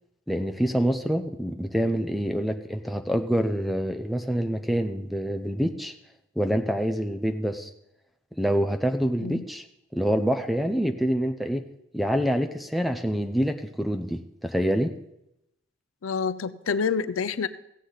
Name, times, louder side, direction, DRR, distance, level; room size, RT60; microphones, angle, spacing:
voice 1, 0.3-5.9 6.4-7.7 8.4-9.6 9.9-11.6 11.9-14.9, equal, ahead, 7 dB, 0.5 m, -26 dB
voice 2, 16.0-17.5, left 6 dB, 75° left, 14 dB, 0.5 m, -27 dB
15.5 x 8.2 x 3.9 m, 0.83 s
head